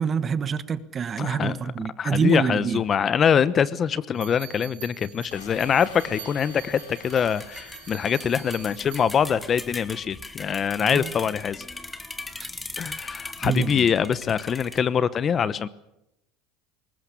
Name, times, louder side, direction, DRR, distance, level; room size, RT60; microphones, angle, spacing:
voice 1, 0.0-2.8 10.8-11.1 12.4-12.5 13.4-13.9, right 6 dB, 30° right, 1.3 m, -26 dB
voice 2, 1.2-1.6 2.0-11.6 12.8-15.7, left 7 dB, 35° left, 1.0 m, -24 dB
sound 1, 4.1-9.3, right 16 dB, 85° right, 3.1 m, -45 dB
sound 2, 5.3-9.1, left 9 dB, 85° left, 2.9 m, -47 dB
sound 3, 5.3-14.8, left 2 dB, 15° left, 1.8 m, -40 dB
21.0 x 19.5 x 8.4 m
supercardioid pair, 100°, 0 cm